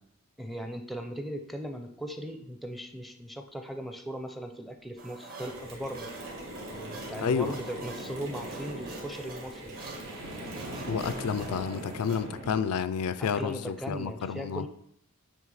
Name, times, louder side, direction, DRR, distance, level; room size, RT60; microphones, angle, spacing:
voice 1, 0.4-6.1 6.7-9.8 11.8-11.9 13.2-14.7, right 1 dB, ahead, 6 dB, 0.5 m, -38 dB
sound 1, 4.9-12.6, right 1 dB, 75° right, 1.4 m, -42 dB
sound 2, 5.0-14.1, right 2 dB, 40° right, 1.0 m, -47 dB
Mechanisms, 5.4-11.6, right 1 dB, 60° right, 2.5 m, -45 dB
voice 2, 7.2-7.5 10.9-14.6, left 6 dB, 85° left, 13 dB, 0.4 m, -30 dB
9.0 x 3.2 x 4.8 m, 0.73 s
head